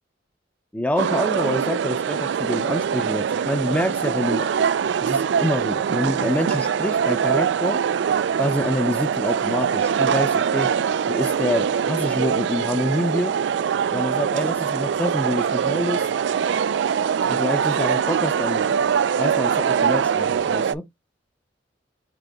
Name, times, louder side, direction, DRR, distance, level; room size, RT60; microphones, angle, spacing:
voice 1, 0.7-4.5 5.0-7.8 8.4-10.7 11.1-13.4 13.9-16.1 17.3-18.7 19.2-20.9, left 1 dB, 10° left, 0.5 m, -26 dB
sound 1, 1.0-20.7, right 7 dB, 70° right, 0.3 m, -23 dB
4.0 x 3.8 x 3.4 m
head